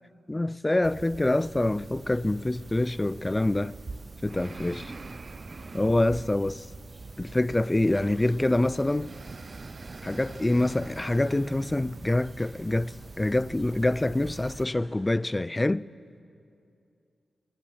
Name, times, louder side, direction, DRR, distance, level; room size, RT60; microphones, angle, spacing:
voice 1, 0.3-3.8 4.2-4.9 5.7-6.7 7.2-9.1 10.0-15.9, left 1 dB, 20° left, 0.5 m, -26 dB
sound 1, 0.8-14.7, right 3 dB, 45° right, 0.8 m, -44 dB
sound 2, 1.4-15.2, right 1 dB, 25° right, 3.6 m, -53 dB
21.5 x 19.5 x 7.6 m
supercardioid pair, 45°, 0 cm